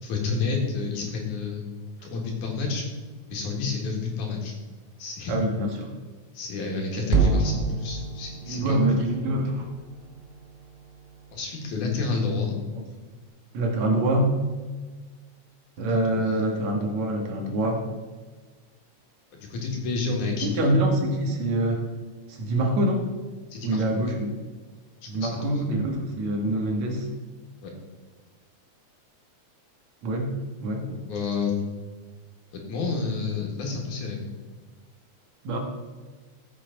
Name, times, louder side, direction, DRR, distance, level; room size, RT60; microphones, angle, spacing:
voice 1, 0.0-1.6 2.0-2.9 3.3-4.5 5.0-5.3 6.3-8.8 11.3-12.6 15.9-16.4 19.3-20.7 23.5-24.1 25.2-25.4 27.6-27.7 31.1-31.5 32.5-34.2, left 4 dB, 85° left, 0 dB, 3.3 m, -29 dB
voice 2, 5.3-5.9 8.5-9.7 13.5-14.4 15.8-17.8 20.4-21.8 22.3-23.0 23.6-24.3 25.1-27.1 30.0-30.3 30.6-31.0 35.4-35.6, right 1 dB, 70° right, 2 dB, 2.8 m, -25 dB
sound 1, 7.1-11.4, right 4 dB, 30° right, 1.3 m, -29 dB
15.0 x 7.7 x 3.9 m, 1.4 s
omnidirectional pair, 3.4 m